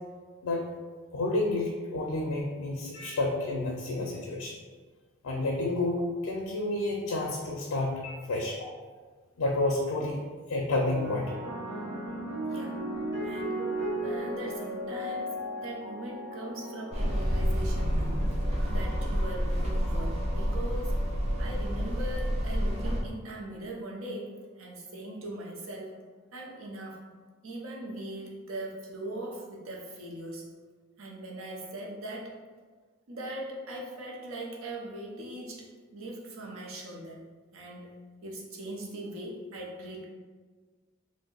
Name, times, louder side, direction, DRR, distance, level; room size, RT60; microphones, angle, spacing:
voice 1, 1.1-4.6 5.2-8.7 9.4-10.2 10.5-11.3, left 2 dB, 80° left, -1 dB, 0.4 m, -30 dB
sound 1, 10.8-19.4 20.3-20.7, right 1 dB, 50° right, 0.9 m, -36 dB
voice 2, 12.4-12.8 13.2-13.6 14.0-18.2 18.7-20.9 21.4-26.0 26.3-27.0 27.4-30.4 31.0-32.4 33.1-37.2 37.5-37.9 38.2-40.0, right 1 dB, 80° right, -2 dB, 0.6 m, -40 dB
sound 2, 16.9-23.0, equal, 30° right, 0.4 m, -29 dB
2.6 x 2.1 x 3.7 m, 1.4 s
head